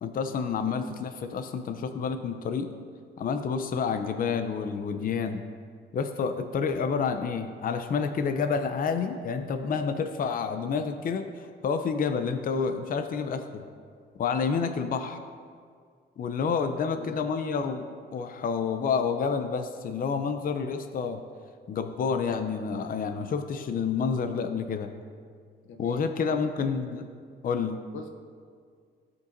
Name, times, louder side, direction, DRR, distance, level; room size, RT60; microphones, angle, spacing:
voice 1, 0.0-2.7 3.2-5.4 5.9-11.2 11.6-13.6 14.2-15.2 16.2-17.9 18.1-21.2 21.7-24.9 25.8-27.1 27.4-27.8, left 5 dB, 45° left, 7 dB, 0.5 m, -29 dB
voice 2, 14.5-14.9 16.8-17.2 25.6-26.5 27.9-28.1, left 4 dB, 85° left, 4 dB, 0.8 m, -42 dB
15.0 x 5.3 x 2.6 m, 2.1 s
cardioid pair, 90°, 20 cm